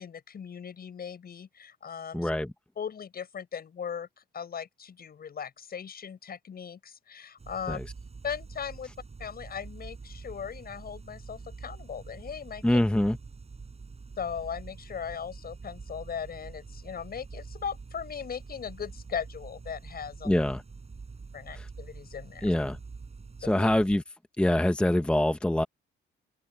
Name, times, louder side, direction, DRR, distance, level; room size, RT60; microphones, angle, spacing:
voice 1, 0.0-2.3 2.8-7.8 8.2-8.9 9.2-12.8 14.2-20.4 21.3-22.5 23.4-23.7, left 7 dB, 50° left, 6.6 m, -38 dB
voice 2, 2.1-2.5 7.7-7.8 12.6-13.2 20.2-20.6 21.5-21.7 22.4-22.8 23.4-24.0 24.4-25.6, left 1 dB, 5° left, 1.0 m, -24 dB
sound 1, 7.4-24.0, right 4 dB, 30° right, 7.8 m, -45 dB
open air
cardioid pair, 90°, 20 cm